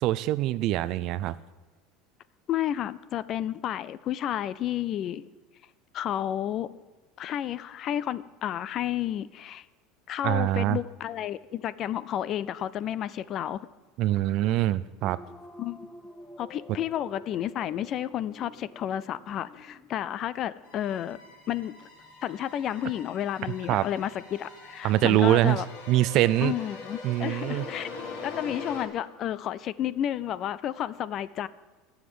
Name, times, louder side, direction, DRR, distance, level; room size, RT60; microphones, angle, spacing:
voice 1, 0.0-1.4 10.2-10.8 14.0-15.2 23.7-23.8 24.8-25.6 25.9-26.5 27.0-27.7, right 15 dB, 45° right, 17 dB, 0.4 m, -24 dB
voice 2, 2.5-5.2 5.9-6.7 7.2-9.7 10.1-13.7 15.6-15.8 16.4-21.2 21.5-21.9 22.2-25.6 26.4-27.9 28.2-31.5, left 11 dB, 35° left, 18 dB, 0.4 m, -31 dB
sound 1, 15.0-29.6, left 1 dB, 10° left, 0.9 m, -52 dB
sound 2, 20.6-28.8, left 4 dB, 60° left, 4.0 m, -42 dB
13.5 x 7.2 x 9.6 m, 1.2 s
cardioid pair, 165°, 0 cm